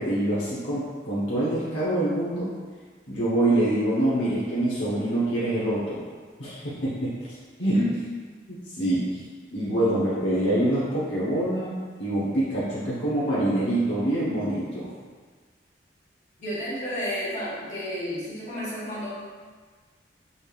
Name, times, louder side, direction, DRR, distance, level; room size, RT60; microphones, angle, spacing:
voice 1, 0.0-2.6 3.1-6.0 6.4-7.8 8.5-9.2 9.5-14.9, right 1 dB, 80° left, -9 dB, 0.9 m, -25 dB
voice 2, 16.4-19.1, left 1 dB, 40° left, -9 dB, 1.3 m, -31 dB
4.2 x 3.3 x 2.4 m, 1.5 s
head